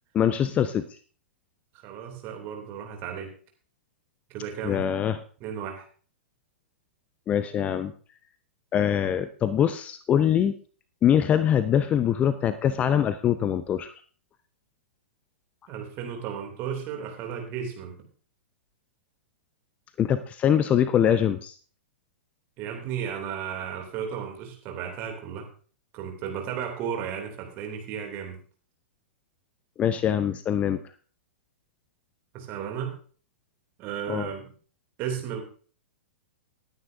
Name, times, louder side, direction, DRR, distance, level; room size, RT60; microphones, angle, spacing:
voice 1, 0.1-0.9 4.6-5.2 7.3-7.9 8.7-10.5 11.0-13.9 20.0-21.5 29.8-30.8 34.1-34.3, left 9 dB, 20° left, 13 dB, 0.5 m, -23 dB
voice 2, 1.8-3.3 4.3-4.8 5.4-5.9 15.7-17.9 22.6-25.5 25.9-28.4 32.3-32.9 33.8-34.4 35.0-35.4, right 8 dB, 30° right, 3 dB, 2.8 m, -34 dB
19.0 x 9.5 x 2.6 m, 0.41 s
figure-of-eight pair, 105°, 6 cm